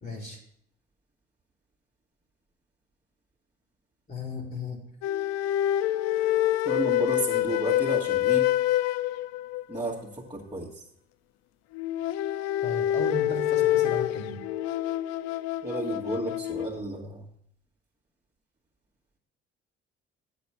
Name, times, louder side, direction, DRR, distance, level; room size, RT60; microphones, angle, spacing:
voice 1, 0.0-0.4 4.1-4.8 12.6-14.4, left 3 dB, 30° left, 2 dB, 2.5 m, -35 dB
sound 1, 5.0-9.8 11.7-16.8, left 13 dB, 60° left, 0.5 m, -27 dB
voice 2, 6.7-8.5 9.7-10.7 15.6-17.3, right 2 dB, 10° right, -6 dB, 1.9 m, -32 dB
8.2 x 6.2 x 5.6 m, 0.67 s
hypercardioid pair, 55°, 30 cm